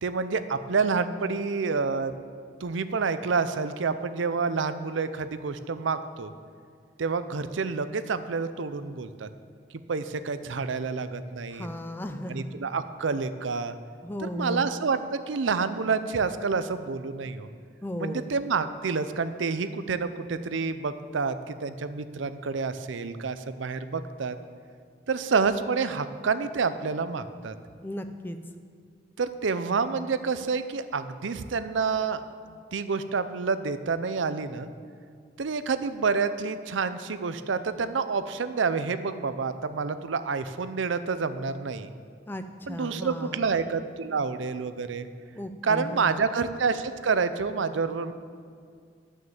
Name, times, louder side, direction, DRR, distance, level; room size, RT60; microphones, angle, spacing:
voice 1, 0.0-2.1 2.6-6.3 7.0-9.3 9.9-11.7 12.3-13.7 14.2-17.5 18.0-24.3 25.1-27.5 29.2-32.2 32.5-34.7 35.4-41.9 42.7-45.1 45.6-48.1, right 5 dB, 80° right, 12 dB, 0.6 m, -28 dB
voice 2, 11.5-12.5 14.0-14.6 17.8-18.3 27.8-28.4 42.3-43.4 45.3-46.2, equal, 10° left, 8 dB, 0.5 m, -35 dB
11.5 x 6.4 x 7.2 m, 2.2 s
head